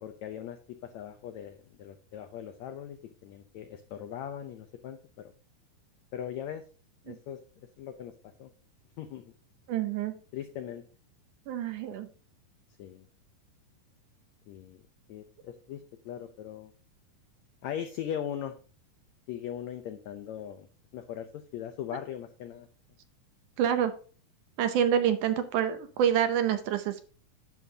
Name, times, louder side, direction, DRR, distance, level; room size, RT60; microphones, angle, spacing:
voice 1, 0.0-5.3 6.1-6.6 7.0-8.1 8.4-8.5 9.0-9.2 10.3-10.8 12.8-13.1 14.5-14.8 15.1-16.7 17.6-18.5 19.3-20.7 20.9-22.7, left 9 dB, 80° left, 8 dB, 1.6 m, -39 dB
voice 2, 9.7-10.2 11.5-12.1 23.6-23.9 24.6-27.1, right 9 dB, 75° right, 9 dB, 2.1 m, -27 dB
10.5 x 8.3 x 2.8 m, 0.38 s
omnidirectional pair, 4.0 m